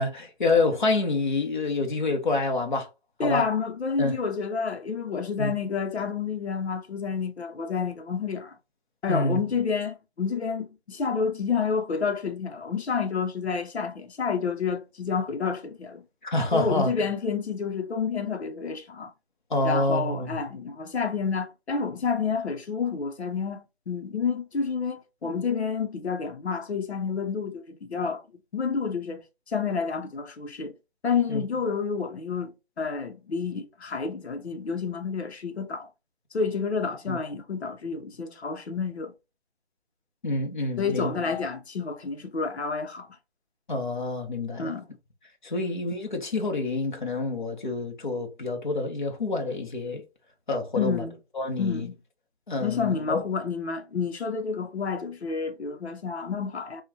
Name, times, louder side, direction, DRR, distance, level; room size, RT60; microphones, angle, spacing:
voice 1, 0.0-2.9 3.2-3.4 4.0-4.2 5.4-5.5 9.1-9.4 16.2-16.9 19.5-20.4 31.3-31.4 37.1-37.2 40.2-41.1 43.7-44.7 45.4-50.0 50.5-51.0 51.3-51.9 52.5-53.2, left 2 dB, 50° left, 1.1 m, -27 dB
voice 2, 3.2-8.6 9.0-16.0 16.5-19.1 19.6-28.2 28.5-30.7 31.0-35.9 36.3-39.1 40.8-43.1 44.6-44.9 50.8-51.1 51.6-52.0 52.6-56.8, left 5 dB, 90° left, 1.0 m, -29 dB
5.6 x 2.4 x 2.9 m
hypercardioid pair, 180°, 32 cm